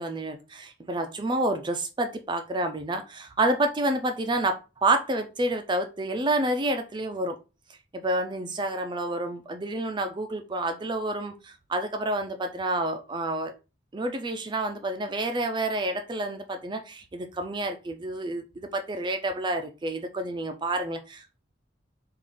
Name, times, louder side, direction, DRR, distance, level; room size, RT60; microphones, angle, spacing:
voice 1, 0.0-7.4 7.9-13.5 13.9-21.4, right 2 dB, 25° right, 0.4 m, -29 dB
3.7 x 2.5 x 3.4 m
head